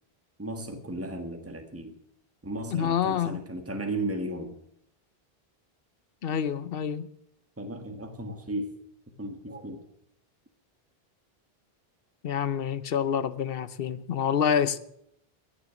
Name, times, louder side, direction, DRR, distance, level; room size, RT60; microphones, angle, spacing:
voice 1, 0.4-1.9 2.4-4.6 7.6-8.7 9.2-9.9, right 1 dB, 15° right, 1.5 m, -35 dB
voice 2, 2.7-3.4 6.2-7.1 12.2-14.8, left 8 dB, 65° left, 1.0 m, -27 dB
16.0 x 6.7 x 9.0 m
omnidirectional pair, 1.1 m